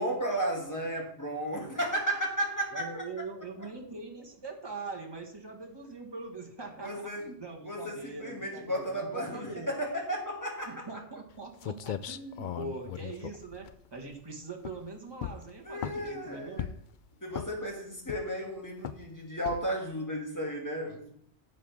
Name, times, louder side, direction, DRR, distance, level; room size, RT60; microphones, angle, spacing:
voice 1, 0.0-3.0 6.8-7.2 7.6-10.9 15.6-16.7 17.2-21.1, right 1 dB, 15° left, -1 dB, 2.4 m, -34 dB
voice 2, 2.7-9.7 10.6-16.7, right 3 dB, 20° right, 1 dB, 1.6 m, -42 dB
sound 1, 11.3-11.4 11.6-14.2 14.6-14.9 15.2-16.2 16.6-16.9 17.3-17.7 18.1-18.5 18.8-19.1 19.5-19.8, left 9 dB, 60° left, 0.6 m, -38 dB
11.0 x 7.7 x 3.5 m, 0.65 s
omnidirectional pair, 1.1 m